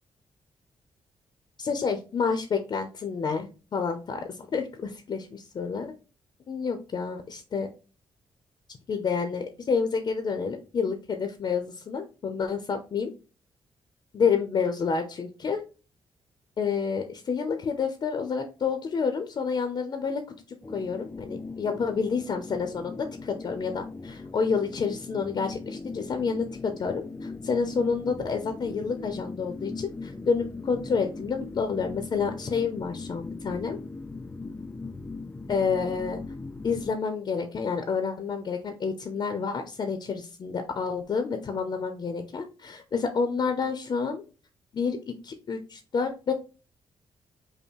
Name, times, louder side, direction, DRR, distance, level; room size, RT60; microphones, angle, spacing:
voice 1, 1.6-5.9 6.5-7.7 8.9-13.1 14.1-15.6 16.6-20.2 20.7-33.8 35.5-36.2 36.6-44.2 44.7-46.3, left 5 dB, 45° left, 7 dB, 0.7 m, -29 dB
sound 1, 20.6-36.9, left 3 dB, 15° left, 0.4 m, -39 dB
5.5 x 2.1 x 4.5 m, 0.33 s
cardioid pair, 105°, 11 cm